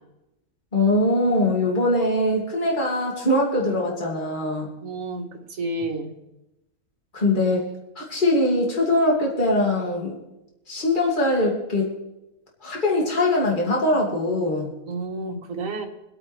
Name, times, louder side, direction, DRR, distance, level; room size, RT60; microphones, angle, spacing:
voice 1, 0.7-4.7 7.1-7.7 8.0-10.2 10.7-12.0 12.6-14.7, left 1 dB, 30° left, -2 dB, 2.5 m, -22 dB
voice 2, 4.8-6.1 14.9-15.9, right 2 dB, 60° right, 3 dB, 1.7 m, -30 dB
25.5 x 8.8 x 3.3 m, 0.94 s
omnidirectional pair, 1.6 m